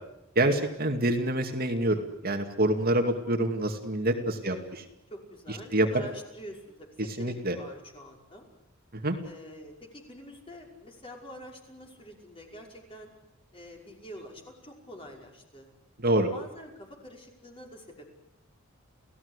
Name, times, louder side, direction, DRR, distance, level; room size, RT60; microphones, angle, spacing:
voice 1, 0.4-4.6 5.7-5.9 7.2-7.6 8.9-9.2 16.0-16.3, right 1 dB, 50° right, 4 dB, 2.4 m, -26 dB
voice 2, 4.4-4.8 5.1-8.5 9.2-13.1 13.5-15.7 16.1-18.1, equal, 25° left, 1 dB, 5.6 m, -46 dB
29.5 x 17.0 x 8.4 m, 0.86 s
head